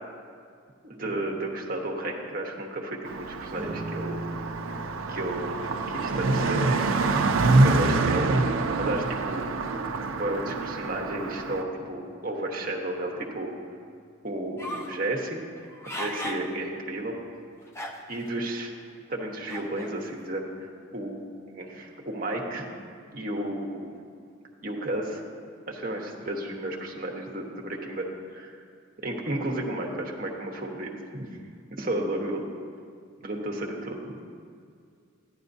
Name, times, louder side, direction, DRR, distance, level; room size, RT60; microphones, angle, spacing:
voice 1, 0.8-4.3 5.1-6.9 7.6-9.8 10.1-13.6 14.2-15.4 16.0-17.2 18.1-18.7 19.1-22.7 23.1-23.9 24.6-25.2 25.7-28.1 28.3-28.6 29.0-31.4 31.7-32.4 33.2-34.2, right 1 dB, 45° right, 0 dB, 1.1 m, -33 dB
Car passing by, 3.0-11.6, right 3 dB, 90° right, 0.5 m, -26 dB
sound 1, 3.5-14.3, right 1 dB, 15° right, 1.1 m, -44 dB
sound 2, 14.6-15.0 15.6-16.5 17.0-17.1 17.7-18.3 19.5-19.9, left 1 dB, 15° left, 0.5 m, -36 dB
13.0 x 10.5 x 2.7 m, 2.3 s
head